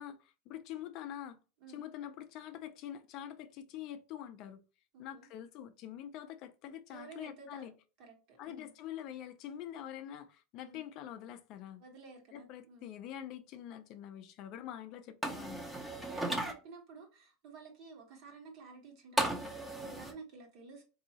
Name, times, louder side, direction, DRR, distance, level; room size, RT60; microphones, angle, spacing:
voice 1, 0.0-1.4 1.7-4.6 5.0-7.7 8.4-11.8 12.3-15.7, left 10 dB, 45° left, 0.4 m, -45 dB
voice 2, 4.9-5.3 6.9-7.7 8.0-8.7 10.7-10.8 11.8-13.0 16.1-20.8, right 4 dB, 50° right, 1.3 m, -52 dB
sound 1, 15.2-16.5 19.2-20.1, right 1 dB, 5° right, 0.6 m, -35 dB
3.9 x 2.7 x 2.8 m
supercardioid pair, 155°, 0 cm